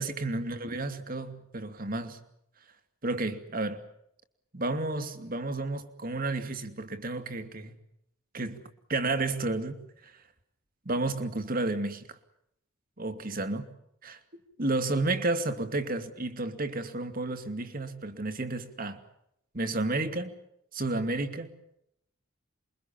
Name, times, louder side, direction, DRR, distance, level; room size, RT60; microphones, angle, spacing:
voice 1, 0.0-2.2 3.0-3.8 4.5-7.8 8.3-8.6 8.9-10.1 10.9-12.2 13.0-13.7 14.0-14.2 14.6-19.0 19.5-20.3 20.7-21.5, right 2 dB, 45° right, 2.6 m, -31 dB
28.0 x 23.0 x 7.3 m
head